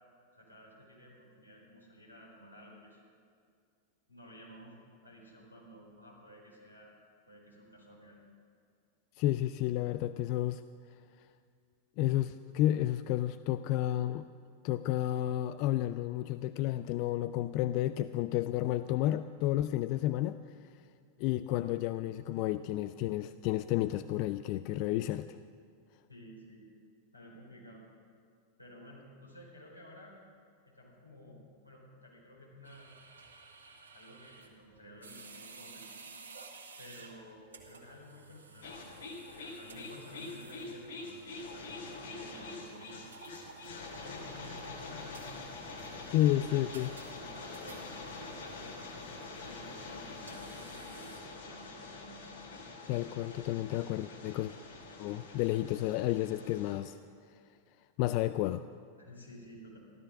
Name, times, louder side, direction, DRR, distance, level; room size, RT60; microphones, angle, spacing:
voice 1, 0.3-3.0 4.1-4.7 5.0-6.9 7.3-8.2 26.1-26.6 27.1-27.8 28.6-30.1 30.6-32.9 33.9-35.9 36.8-39.0 39.2-41.3 41.5-43.1 44.0-46.7 47.1-52.2 59.0-59.8, equal, 85° left, -4 dB, 4.5 m, -53 dB
voice 2, 9.2-10.6 12.0-14.3 14.6-20.4 21.2-25.4 46.1-46.9 52.9-54.5 55.0-57.0 58.0-58.6, left 14 dB, 45° left, 13 dB, 0.4 m, -31 dB
sound 1, 32.6-51.7, right 4 dB, 70° right, 1.8 m, -54 dB
sound 2, 38.6-56.8, left 3 dB, 65° left, 2.9 m, -45 dB
15.0 x 13.0 x 6.4 m, 2.2 s
figure-of-eight pair, 90°, 0 cm